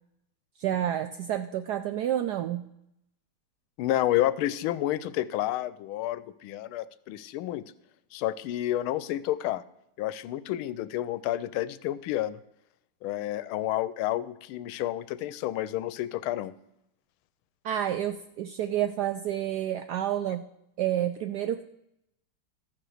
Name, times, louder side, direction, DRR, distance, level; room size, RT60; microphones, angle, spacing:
voice 1, 0.6-2.6 17.6-20.4 20.8-21.6, right 11 dB, 80° right, 9 dB, 0.9 m, -29 dB
voice 2, 3.8-7.6 8.1-9.6 10.0-12.4 13.0-16.5, left 14 dB, 90° left, 16 dB, 1.4 m, -30 dB
13.5 x 5.9 x 6.4 m, 0.80 s
omnidirectional pair, 2.3 m